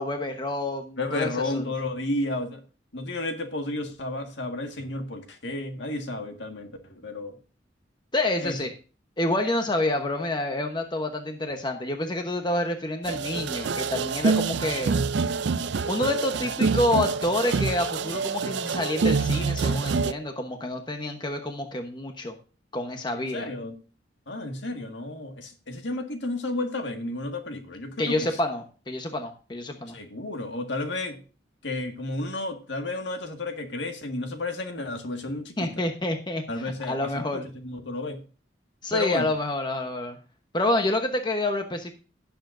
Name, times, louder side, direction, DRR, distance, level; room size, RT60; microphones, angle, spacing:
voice 1, 0.0-1.6 8.1-8.7 9.2-14.9 15.9-22.3 22.7-23.5 28.0-30.0 35.6-37.4 38.8-40.2 40.5-41.9, left 1 dB, 25° left, 5 dB, 1.0 m, -28 dB
voice 2, 1.0-2.6 2.9-7.4 8.4-8.6 23.3-23.8 24.3-28.4 29.9-31.2 31.6-35.7 36.5-38.2 38.9-39.3, left 2 dB, 70° left, 5 dB, 1.8 m, -32 dB
sound 1, 13.0-20.1, right 4 dB, 65° right, 0.4 m, -26 dB
16.5 x 7.1 x 2.6 m, 0.36 s
head